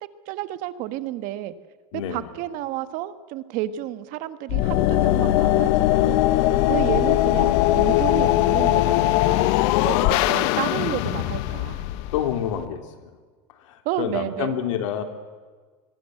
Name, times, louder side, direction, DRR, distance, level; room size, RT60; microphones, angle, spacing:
voice 1, 0.3-1.5 2.1-6.2 6.7-9.6 9.8-10.0 10.3-11.8 13.8-14.5, right 13 dB, 60° right, 13 dB, 1.4 m, -31 dB
voice 2, 1.9-2.3 12.1-13.1 13.6-15.0, left 9 dB, 85° left, 7 dB, 3.2 m, -28 dB
sound 1, 4.5-12.6, left 15 dB, 70° left, 1.1 m, -20 dB
25.5 x 22.0 x 7.8 m, 1.4 s
supercardioid pair, 135°, 16 cm